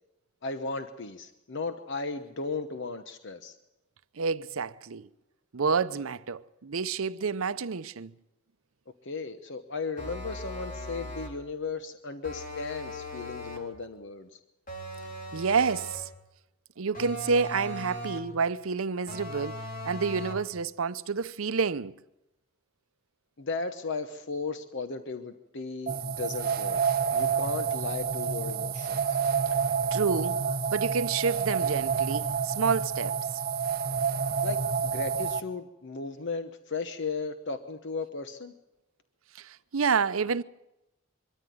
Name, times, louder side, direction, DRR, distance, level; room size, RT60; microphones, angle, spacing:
voice 1, 0.4-3.6 9.0-14.4 23.4-26.8 27.1-29.2 34.4-38.5, left 4 dB, 60° left, 1.0 m, -36 dB
voice 2, 4.2-5.1 5.5-8.1 15.3-16.1 16.8-21.9 29.9-30.4 30.7-33.2 39.4-40.4, right 5 dB, 75° right, 0.7 m, -29 dB
sound 1, 10.0-11.4 12.2-13.7 14.7-16.1 16.9-18.4 19.1-20.5, equal, 40° left, 3.7 m, -39 dB
sound 2, 25.9-35.4, right 6 dB, 45° right, 1.0 m, -29 dB
23.5 x 13.5 x 9.3 m
head